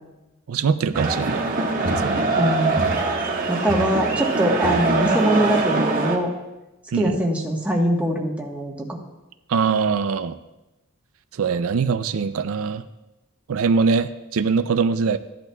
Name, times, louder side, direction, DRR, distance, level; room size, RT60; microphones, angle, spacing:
voice 1, 0.5-1.5 2.0-2.2 6.9-7.2 9.5-10.4 11.3-12.9 13.5-15.2, right 5 dB, 85° right, 11 dB, 0.4 m, -22 dB
sound 1, 0.9-6.2, right 3 dB, 45° right, 1.4 m, -22 dB
voice 2, 2.3-2.9 3.5-6.3 7.0-9.0, equal, 5° right, -1 dB, 1.2 m, -22 dB
15.0 x 10.5 x 2.3 m, 1.0 s
head